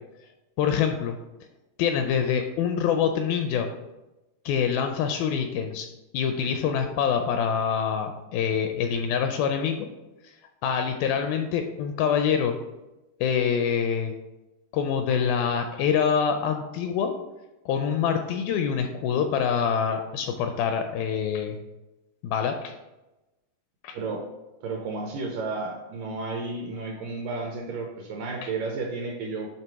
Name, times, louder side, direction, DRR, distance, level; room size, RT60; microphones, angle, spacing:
voice 1, 0.6-1.2 1.8-3.7 4.5-5.9 6.1-9.9 10.6-12.6 13.2-14.1 14.7-17.1 17.7-21.6 22.2-22.7 23.8-24.0 28.4-28.5, left 7 dB, 80° left, 6 dB, 2.1 m, -25 dB
voice 2, 23.9-24.2 24.6-29.5, right 3 dB, 80° right, 1 dB, 2.0 m, -32 dB
8.9 x 3.2 x 4.6 m, 1.0 s
omnidirectional pair, 4.5 m